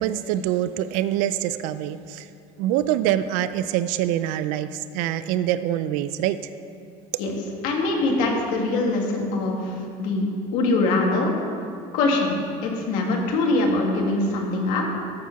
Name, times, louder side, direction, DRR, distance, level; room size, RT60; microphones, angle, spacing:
voice 1, 0.0-2.3 2.6-6.4, right 12 dB, 75° right, 13 dB, 0.4 m, -25 dB
voice 2, 7.6-10.2 10.5-11.3 11.9-12.3 12.6-14.8, left 2 dB, 75° left, 0 dB, 1.8 m, -23 dB
13.5 x 4.7 x 5.8 m, 2.4 s
cardioid pair, 130°, 14 cm